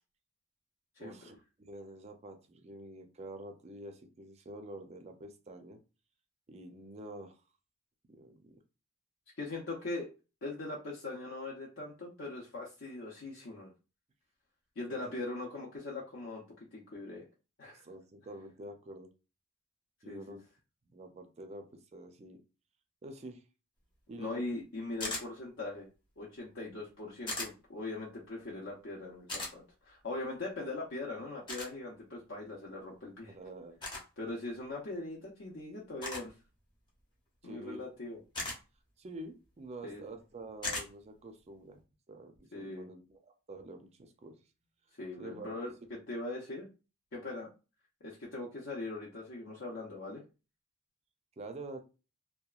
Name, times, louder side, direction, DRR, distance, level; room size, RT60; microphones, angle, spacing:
voice 1, 1.0-5.8 6.5-7.4 8.1-8.6 14.9-15.2 17.7-19.1 20.0-20.4 20.9-22.4 23.0-23.4 24.1-24.4 33.3-33.8 37.4-37.8 39.0-41.8 42.1-44.4 45.2-45.5 45.8-45.9 51.4-51.8, right 1 dB, 30° right, 0.4 m, -47 dB
voice 2, 9.4-10.1 10.4-13.7 14.8-16.4 16.7-17.2 17.6-17.8 20.1-20.4 24.2-25.9 26.2-33.3 34.2-36.3 37.4-38.2 39.8-40.0 42.5-42.9 45.0-46.7 47.1-47.5 48.0-50.2, left 2 dB, 60° left, 0.6 m, -41 dB
sound 1, 25.0-25.3 27.3-27.5 29.3-29.5 31.5-31.7 33.8-34.0 36.0-36.3 38.3-38.6 40.6-40.9, left 2 dB, 20° left, 0.7 m, -37 dB
2.8 x 2.2 x 2.3 m
head